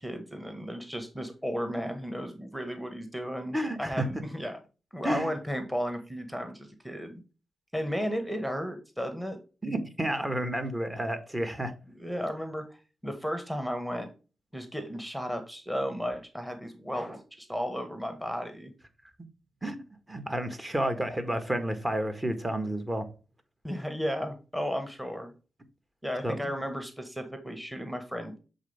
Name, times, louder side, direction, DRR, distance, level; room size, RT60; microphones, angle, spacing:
voice 1, 0.0-4.6 4.9-7.2 7.7-9.4 11.9-12.6 13.0-14.1 14.5-18.7 23.6-25.3 26.0-28.4, equal, 5° right, 1.6 m, -34 dB
voice 2, 3.5-4.1 5.0-5.3 9.6-11.7 19.6-19.8 20.1-23.1 26.2-26.5, right 1 dB, 20° right, 1.6 m, -31 dB
7.3 x 4.0 x 3.4 m
supercardioid pair, 45°, 0 cm